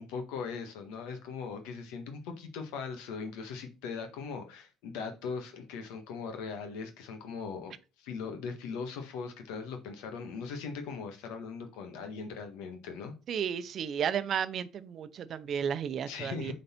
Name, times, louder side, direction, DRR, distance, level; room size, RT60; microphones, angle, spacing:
voice 1, 0.0-13.1 16.1-16.5, left 5 dB, 90° left, 1.4 m, -40 dB
voice 2, 13.3-16.5, right 8 dB, 45° right, 0.7 m, -33 dB
7.7 x 4.0 x 4.4 m
cardioid pair, 125°, 0 cm